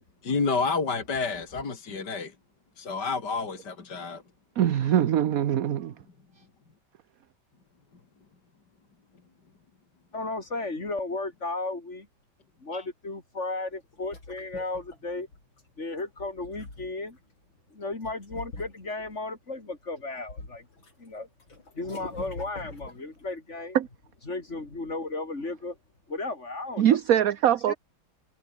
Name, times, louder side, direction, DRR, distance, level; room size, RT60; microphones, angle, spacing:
voice 1, 0.2-2.3 2.8-4.2 12.7-12.8, left 4 dB, 55° left, 3.8 m, -29 dB
voice 2, 4.6-5.9 23.7-23.9 26.8-27.7, right 10 dB, 55° right, 1.1 m, -22 dB
voice 3, 10.1-12.1 12.6-15.3 15.8-17.2 17.7-20.7 21.0-21.3 21.7-23.8 24.3-25.8 26.1-27.0 27.7-27.8, left 2 dB, 35° left, 4.2 m, -34 dB
sound 1, 13.7-15.6 16.1-17.2 18.0-19.1 19.7-20.9 21.2-23.3, left 3 dB, 80° left, 7.1 m, -44 dB
omnidirectional pair, 2.1 m